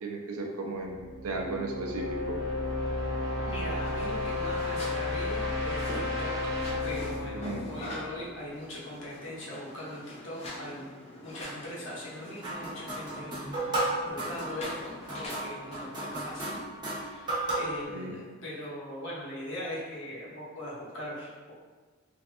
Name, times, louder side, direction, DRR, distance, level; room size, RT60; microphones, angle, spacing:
voice 1, 0.0-2.4 7.2-7.7 17.9-18.1, right 2 dB, 90° right, 1 dB, 0.5 m, -35 dB
sound 1, 0.8-8.6, left 2 dB, 65° right, 0.8 m, -33 dB
voice 2, 3.4-6.5 6.8-10.9 11.2-16.6 16.9-21.5, left 1 dB, 60° left, -6 dB, 0.8 m, -40 dB
sound 2, 3.7-16.4, left 1 dB, 30° left, 0.3 m, -44 dB
sound 3, 12.4-17.8, right 1 dB, 20° right, 0.7 m, -34 dB
3.1 x 2.5 x 2.5 m, 1.3 s
head